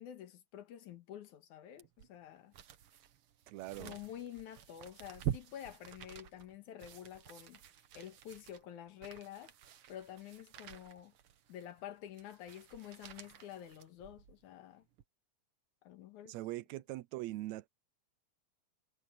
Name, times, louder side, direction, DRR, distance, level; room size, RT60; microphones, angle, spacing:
voice 1, 0.0-2.5 3.8-7.6 7.9-9.5 9.9-11.1 11.5-14.8 15.8-16.4, left 11 dB, 85° left, 2.9 m, -49 dB
sound 1, 1.8-14.4 14.9-15.0, right 11 dB, 60° right, 1.7 m, -47 dB
voice 2, 3.5-4.0 16.3-17.7, right 17 dB, 80° right, 1.8 m, -42 dB
omnidirectional pair, 3.4 m